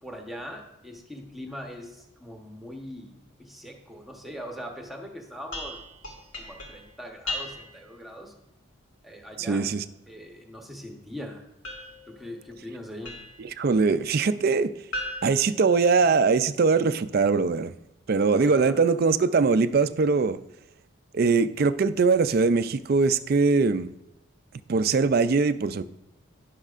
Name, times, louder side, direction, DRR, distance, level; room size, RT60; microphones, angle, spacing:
voice 1, 0.0-5.8 6.4-8.3 9.0-9.7 10.1-11.5 12.1-13.1 18.3-18.8, equal, ahead, 1 dB, 1.0 m, -41 dB
sound 1, 5.5-7.9 11.6-13.5 14.9-16.4, left 1 dB, 70° left, 2.4 m, -38 dB
voice 2, 9.4-9.8 13.4-14.7 15.2-17.7 18.1-20.4 21.1-23.9 24.7-25.8, right 4 dB, 45° right, 12 dB, 0.4 m, -22 dB
12.0 x 10.5 x 2.5 m, 0.87 s
head